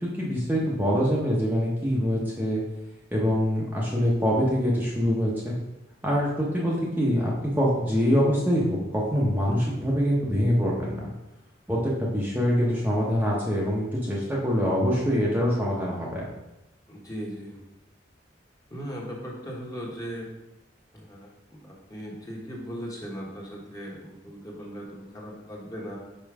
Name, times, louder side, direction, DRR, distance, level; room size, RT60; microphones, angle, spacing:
voice 1, 0.0-2.6 3.1-5.5 6.0-11.1 11.7-16.3, equal, 10° right, -5 dB, 0.9 m, -24 dB
voice 2, 16.9-17.6 18.7-20.3 20.9-26.0, equal, 20° left, -3 dB, 1.3 m, -38 dB
5.4 x 4.5 x 4.8 m, 0.96 s
head